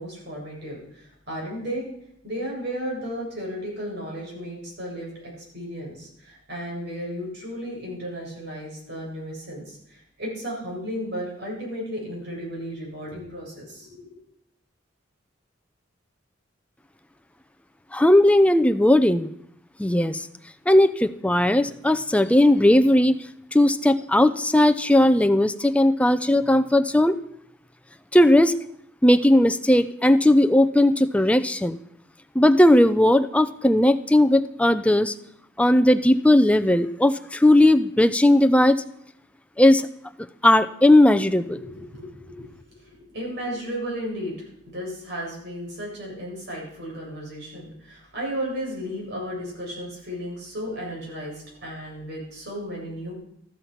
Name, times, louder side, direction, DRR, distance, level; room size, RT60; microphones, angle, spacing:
voice 1, 0.0-1.9 2.2-14.2 41.6-44.3 44.7-53.1, equal, 55° right, -3 dB, 7.8 m, -34 dB
voice 2, 17.9-19.3 19.8-20.3 20.7-23.2 23.5-27.2 28.1-28.6 29.0-31.8 32.3-35.1 35.6-38.8 39.6-39.9 40.4-41.6, left 1 dB, 5° left, 10 dB, 0.6 m, -17 dB
14.0 x 12.5 x 5.9 m, 0.73 s
head